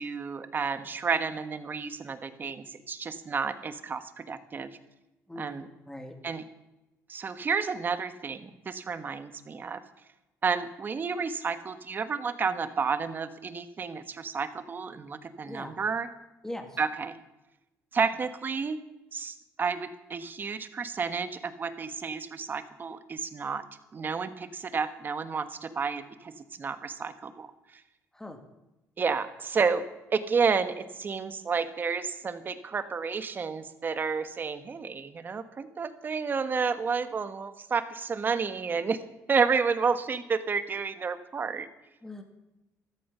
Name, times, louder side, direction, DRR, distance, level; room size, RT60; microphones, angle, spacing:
voice 1, 0.0-4.7 5.4-5.6 6.2-6.4 7.1-9.8 10.4-16.1 16.8-17.2 17.9-18.8 19.1-23.6 23.9-26.3 26.6-27.5 29.0-41.7, right 5 dB, 35° right, 11 dB, 1.3 m, -31 dB
voice 2, 5.3-6.2 15.4-15.7 16.4-16.8 28.1-28.4 42.0-42.2, left 1 dB, 10° left, 5 dB, 2.5 m, -41 dB
14.5 x 13.5 x 5.6 m, 0.99 s
cardioid pair, 110°, 6 cm